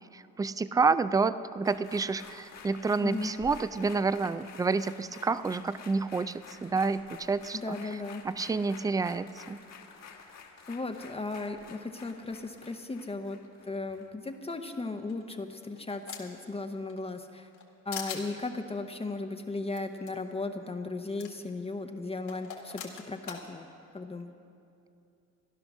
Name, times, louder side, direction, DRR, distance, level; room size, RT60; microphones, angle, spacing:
voice 1, 0.1-7.8 8.2-9.6, right 4 dB, 10° right, 14 dB, 0.3 m, -29 dB
sound 1, 1.6-14.4 14.7-14.8, left 6 dB, 60° left, 1.5 m, -50 dB
voice 2, 7.5-8.2 10.7-13.4 13.6-17.5 17.8-24.3, left 3 dB, 20° left, 5 dB, 0.8 m, -36 dB
sound 2, 15.1-16.5 16.9-17.6 17.9-18.2 19.7-19.8 20.1-20.2 21.2-21.3 22.3-23.4, left 7 dB, 80° left, 2.0 m, -41 dB
15.0 x 11.0 x 6.2 m, 2.6 s
cardioid pair, 95°, 30 cm